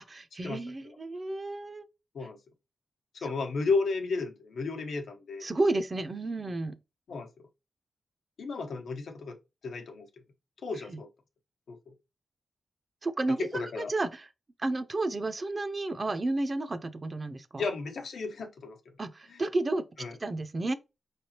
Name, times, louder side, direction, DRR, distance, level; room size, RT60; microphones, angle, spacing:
voice 1, 0.1-1.9 5.4-6.8 10.9-11.0 13.0-14.3 14.6-17.7 19.0-19.8 20.2-20.7, right 2 dB, 35° right, 0.6 m, -31 dB
voice 2, 3.2-5.5 7.1-7.3 8.4-9.4 9.6-10.1 10.6-11.1 11.7-11.8 13.5-13.9 17.6-18.8 19.3-19.4 20.0-20.1, left 4 dB, 85° left, 0.9 m, -33 dB
4.9 x 3.3 x 2.9 m
wide cardioid pair, 100°, 0 cm